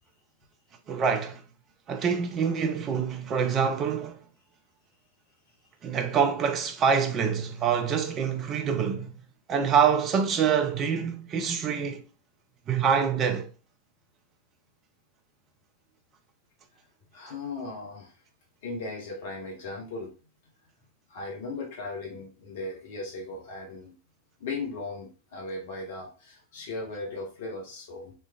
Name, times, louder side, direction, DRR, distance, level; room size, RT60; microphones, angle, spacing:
voice 1, 0.9-1.4 1.9-4.2 5.8-9.1 9.5-12.0 12.7-13.5, right 7 dB, 30° right, 0.4 m, -25 dB
voice 2, 17.1-18.1 18.6-20.1 21.1-23.9 24.4-28.1, left 3 dB, 55° left, 1.1 m, -37 dB
3.2 x 3.1 x 2.3 m
figure-of-eight pair, 90°, 0 cm